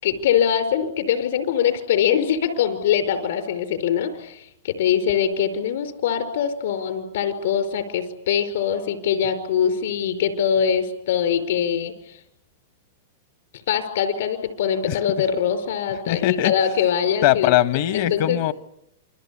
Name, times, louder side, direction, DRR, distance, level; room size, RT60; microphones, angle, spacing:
voice 1, 0.0-12.2 13.7-17.5 17.9-18.4, left 8 dB, 75° left, 8 dB, 5.1 m, -23 dB
voice 2, 16.1-16.5 17.2-18.5, left 14 dB, 55° left, 14 dB, 1.2 m, -20 dB
28.5 x 23.0 x 8.6 m, 0.83 s
supercardioid pair, 145°, 0 cm